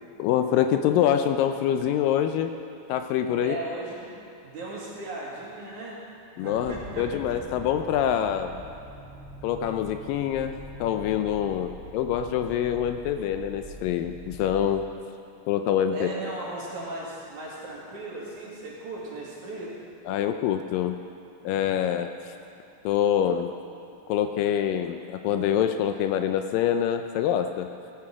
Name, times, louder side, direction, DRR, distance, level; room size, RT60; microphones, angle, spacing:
voice 1, 0.2-2.6 2.9-3.6 6.4-8.6 9.4-10.5 10.8-14.8 15.5-16.1 20.1-21.0 21.4-22.3 22.8-23.5 24.1-27.7, left 10 dB, 80° left, 7 dB, 2.1 m, -25 dB
voice 2, 3.4-4.1 4.4-6.0 6.4-7.1 15.9-19.8, right 2 dB, 60° right, -5 dB, 3.5 m, -37 dB
sound 1, 6.5-14.8, right 1 dB, 5° left, 0.6 m, -44 dB
16.5 x 11.5 x 4.8 m, 2.6 s
omnidirectional pair, 4.1 m